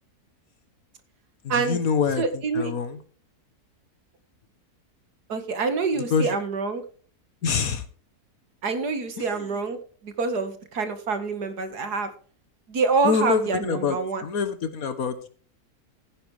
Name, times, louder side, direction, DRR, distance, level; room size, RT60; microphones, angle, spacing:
voice 1, 1.4-3.0 6.1-6.4 7.4-7.9 9.2-9.4 13.0-15.3, left 5 dB, 65° left, 11 dB, 1.6 m, -26 dB
voice 2, 2.2-2.7 5.3-6.8 8.6-9.8 10.0-12.1 12.7-14.2, right 4 dB, 85° right, 9 dB, 2.3 m, -26 dB
15.0 x 10.0 x 3.4 m, 0.41 s
omnidirectional pair, 1.7 m